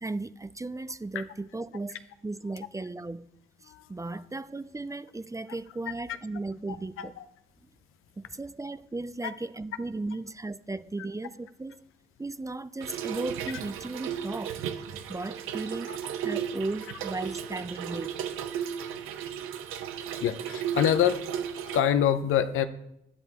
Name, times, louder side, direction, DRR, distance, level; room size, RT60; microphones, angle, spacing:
voice 1, 0.0-3.3 3.6-7.1 8.2-11.8 12.2-14.6 15.1-18.2, right 2 dB, 15° right, 0.5 m, -36 dB
Trickle dribble / Fill (with liquid), 12.8-21.8, right 8 dB, 90° right, 0.7 m, -35 dB
voice 2, 20.2-21.2 21.6-22.6, left 9 dB, 80° left, 0.7 m, -25 dB
11.0 x 10.5 x 3.0 m
supercardioid pair, 50°, 21 cm